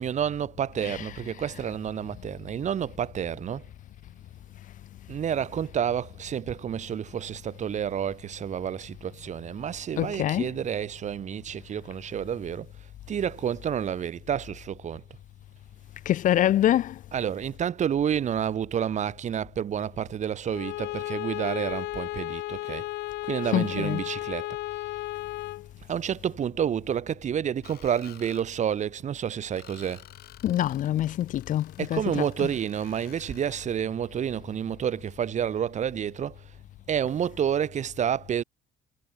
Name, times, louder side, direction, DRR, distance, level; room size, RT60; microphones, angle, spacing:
voice 1, 0.0-3.6 5.1-12.7 13.1-15.0 17.1-22.9 23.2-24.5 25.9-30.0 31.8-36.5 36.9-38.4, right 9 dB, 45° right, 1.3 m, -29 dB
voice 2, 10.0-10.5 16.1-17.0 23.5-24.0 30.4-32.5, left 12 dB, 50° left, 0.4 m, -25 dB
Bowed string instrument, 20.5-25.7, left 19 dB, 85° left, 1.9 m, -34 dB
Screech, 27.6-28.5 29.6-33.7, left 13 dB, 70° left, 3.8 m, -51 dB
cardioid pair, 110°, 17 cm